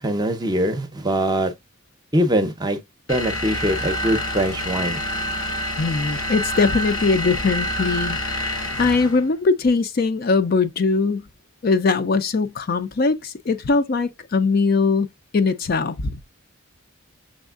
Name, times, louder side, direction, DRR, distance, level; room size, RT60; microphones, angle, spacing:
voice 1, 0.0-1.5 2.1-2.8 3.1-5.0, equal, 20° right, 0.6 m, -22 dB
sound 1, 3.1-9.3, equal, 90° left, 1.0 m, -27 dB
voice 2, 5.8-11.3 11.6-15.1 15.3-16.2, left 4 dB, 45° left, 0.4 m, -21 dB
6.3 x 3.4 x 2.3 m
head